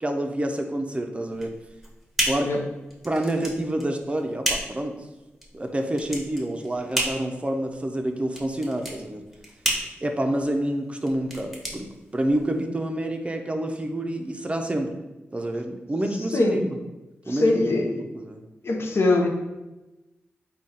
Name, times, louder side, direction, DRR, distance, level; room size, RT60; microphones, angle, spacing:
voice 1, 0.0-1.5 2.2-2.5 3.0-4.9 5.5-9.2 10.0-14.9 15.3-16.8 17.3-18.4, right 1 dB, 25° right, 4 dB, 0.5 m, -28 dB
sound 1, 1.3-12.6, right 1 dB, ahead, 0.9 m, -32 dB
voice 2, 17.3-18.0 18.6-19.3, left 2 dB, 65° left, 2 dB, 0.6 m, -22 dB
3.6 x 2.3 x 4.0 m, 1.0 s
cardioid pair, 55°, 5 cm